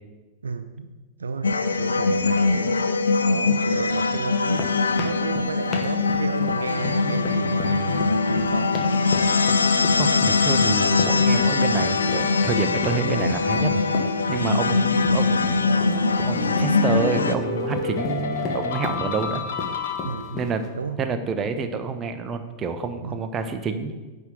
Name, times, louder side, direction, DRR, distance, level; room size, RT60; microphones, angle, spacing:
voice 1, 0.4-0.9 1.2-3.0 3.2-4.8 5.0-8.8 14.5-14.7 20.0-20.4 20.8-21.0 23.0-23.2, right 4 dB, 75° right, 9 dB, 0.4 m, -32 dB
sound 1, 1.4-17.3, left 4 dB, 75° left, 0.4 m, -22 dB
sound 2, 4.3-20.7, left 3 dB, 30° left, 1.1 m, -35 dB
voice 2, 10.0-19.4 20.3-20.6 21.0-23.9, right 5 dB, 25° right, 7 dB, 0.7 m, -28 dB
sound 3, 15.6-20.5, left 4 dB, 55° left, 1.0 m, -30 dB
10.0 x 3.6 x 7.0 m, 1.2 s
figure-of-eight pair, 90°, 0 cm